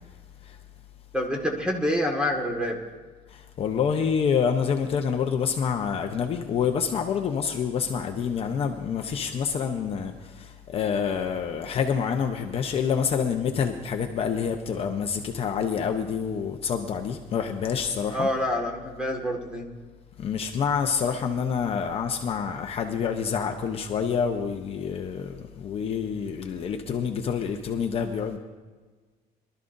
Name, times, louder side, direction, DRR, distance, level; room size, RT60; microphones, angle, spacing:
voice 1, 1.1-2.7 18.1-19.6, left 1 dB, 5° right, 1 dB, 1.7 m, -27 dB
voice 2, 3.3-18.4 20.2-28.4, left 7 dB, 40° left, 4 dB, 0.8 m, -27 dB
23.5 x 12.5 x 2.6 m, 1.4 s
cardioid pair, 170°, 16 cm